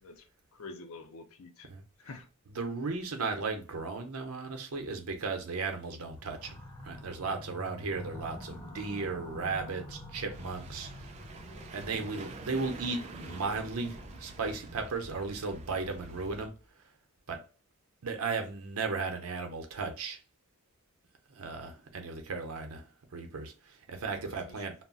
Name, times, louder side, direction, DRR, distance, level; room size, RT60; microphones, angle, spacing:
voice 1, 0.0-1.7 2.0-2.3 24.2-24.7, left 3 dB, 70° left, 0.5 m, -48 dB
voice 2, 2.5-6.6 6.8-10.9 11.7-16.5 17.3-17.4 18.0-20.2 21.3-24.7, right 4 dB, 85° right, 0.7 m, -35 dB
sound 1, 6.1-16.6, left 1 dB, 15° left, 0.6 m, -47 dB
sound 2, 10.3-16.5, right 3 dB, 30° right, 0.3 m, -48 dB
2.3 x 2.1 x 3.7 m
head